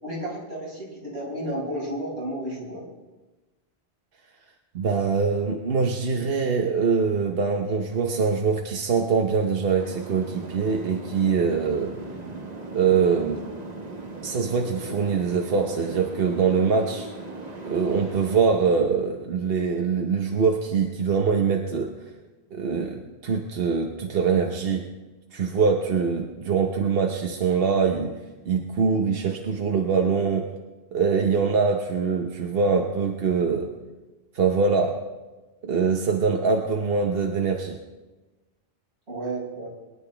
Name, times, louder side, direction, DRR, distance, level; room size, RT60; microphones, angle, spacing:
voice 1, 0.0-2.8 39.1-39.7, right 1 dB, 80° right, -6 dB, 5.6 m, -32 dB
voice 2, 4.7-11.9 12.7-13.5 14.2-17.1 17.6-21.9 22.5-24.9 25.3-28.2 28.4-30.5 30.9-33.7 34.3-34.9 35.6-37.8, right 5 dB, 60° right, 2 dB, 1.1 m, -23 dB
sound 1, 9.8-18.4, right 2 dB, 40° right, 1.3 m, -38 dB
22.5 x 11.0 x 3.4 m, 1.2 s
omnidirectional pair, 1.1 m